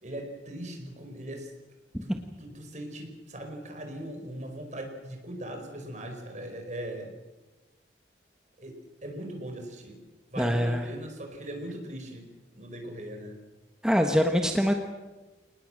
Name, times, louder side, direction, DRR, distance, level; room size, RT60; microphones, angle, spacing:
voice 1, 0.0-1.5 2.0-7.1 8.6-10.0 10.3-12.3 12.5-13.4, right 1 dB, 45° right, 4 dB, 4.7 m, -40 dB
voice 2, 10.4-10.8 13.8-14.7, equal, 5° right, 4 dB, 1.4 m, -24 dB
26.0 x 19.5 x 7.7 m, 1.2 s
head